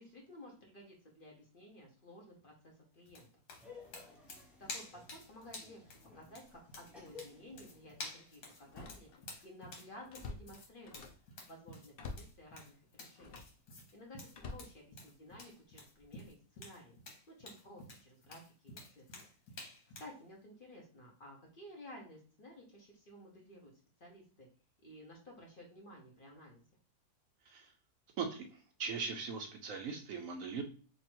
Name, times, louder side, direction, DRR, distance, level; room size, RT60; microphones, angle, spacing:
voice 1, 0.0-3.3 4.6-9.1 9.4-11.1 11.5-13.4 13.9-17.0 17.3-19.0 19.5-23.7 24.0-24.5 24.8-26.6, left 1 dB, 40° left, -1 dB, 1.0 m, -54 dB
sound 1, 3.1-20.2, left 2 dB, 80° left, 1.6 m, -51 dB
Laughter, 3.6-8.7, left 4 dB, ahead, 0.6 m, -57 dB
Slam, 6.4-6.7 7.2-7.3 8.6-9.4 9.7-11.3 11.9-12.4 13.1-13.6 14.3-15.4 16.0-16.3, left 3 dB, 65° left, 0.6 m, -49 dB
voice 2, 28.2-30.6, right 5 dB, 70° right, 5 dB, 0.9 m, -40 dB
3.1 x 2.5 x 4.4 m, 0.40 s
omnidirectional pair, 1.6 m